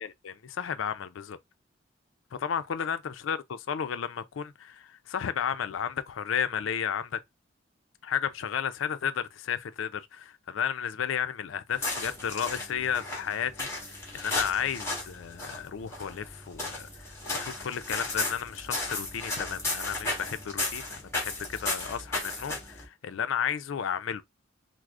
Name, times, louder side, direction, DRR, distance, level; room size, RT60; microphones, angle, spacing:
voice 1, 0.0-1.4 2.3-7.2 8.0-13.7 14.1-24.2, left 8 dB, 80° left, 0.4 m, -33 dB
sound 1, 11.7-22.9, left 2 dB, 15° left, 1.4 m, -35 dB
4.6 x 2.0 x 2.4 m
head